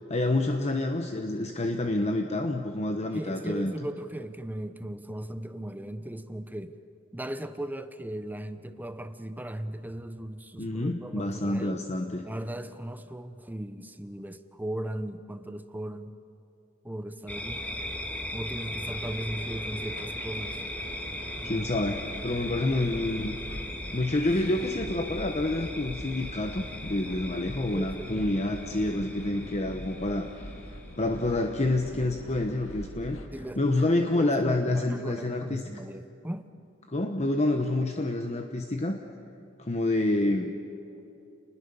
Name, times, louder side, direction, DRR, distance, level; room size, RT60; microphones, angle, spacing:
voice 1, 0.0-3.7 10.6-12.2 21.4-23.3 23.9-30.3 31.0-33.2 33.6-35.6 36.9-39.0 39.6-40.5, left 2 dB, 35° left, 5 dB, 1.0 m, -28 dB
voice 2, 3.1-6.8 7.1-11.8 12.2-16.2 16.8-17.7 18.3-20.6 21.4-21.7 27.7-28.2 33.3-36.5, right 1 dB, 10° right, 11 dB, 0.9 m, -37 dB
sound 1, 17.3-31.6, left 1 dB, 10° left, 2.3 m, -38 dB
sound 2, 18.9-33.3, left 1 dB, 80° left, 2.2 m, -43 dB
29.0 x 20.5 x 7.0 m, 2.7 s
head